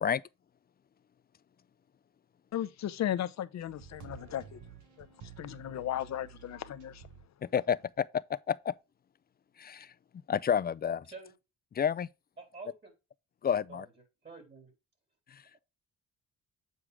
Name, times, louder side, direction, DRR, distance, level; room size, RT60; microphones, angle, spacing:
voice 1, 2.5-4.6 5.0-5.1 5.4-7.0, left 11 dB, 60° left, 0.8 m, -35 dB
sound 1, 3.6-7.3 7.9-8.0, right 8 dB, 75° right, 1.8 m, -51 dB
voice 2, 7.5-8.1 8.5-8.7 9.6-9.9 10.3-11.1 11.8-12.1 13.4-13.9 15.3-15.4, left 8 dB, 30° left, 0.4 m, -29 dB
voice 3, 12.4-12.9 13.7-13.9 14.2-14.7, right 4 dB, 35° right, 3.6 m, -48 dB
7.8 x 4.7 x 3.6 m
cardioid pair, 90°, 30 cm